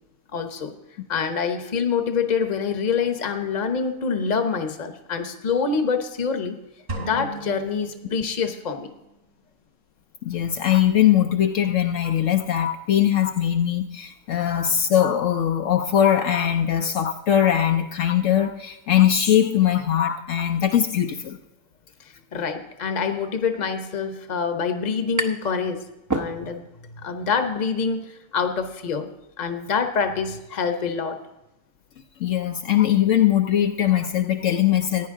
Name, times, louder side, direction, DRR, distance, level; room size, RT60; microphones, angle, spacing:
voice 1, 0.3-0.7 1.1-6.6 7.0-8.9 22.3-25.8 26.1-26.6 27.0-29.1 29.4-31.2, left 5 dB, 35° left, 7 dB, 1.0 m, -26 dB
sound 1, 6.9-8.9, right 2 dB, 60° right, 2.9 m, -36 dB
voice 2, 10.2-21.4 32.2-35.1, left 10 dB, 70° left, 6 dB, 1.0 m, -21 dB
sound 2, 24.5-25.6 25.9-26.8, right 2 dB, 20° right, 0.6 m, -29 dB
15.0 x 10.0 x 3.7 m, 0.97 s
omnidirectional pair, 1.4 m